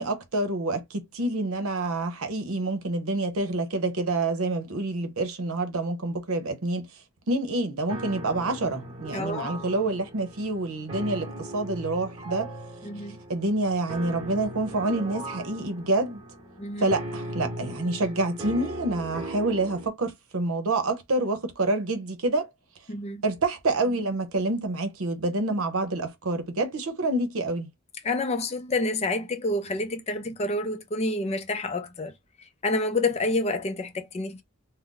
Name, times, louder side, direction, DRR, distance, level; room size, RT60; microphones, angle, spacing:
voice 1, 0.0-6.9 7.3-12.5 13.3-16.2 16.8-22.5 23.2-27.7, right 2 dB, 75° right, 0.8 m, -27 dB
sound 1, 7.9-19.9, right 1 dB, 25° right, 1.0 m, -38 dB
voice 2, 9.1-9.5 12.8-13.2 16.6-17.0 22.9-23.2 28.0-32.1 32.4-34.4, left 2 dB, 30° left, 0.5 m, -28 dB
2.5 x 2.1 x 3.7 m
head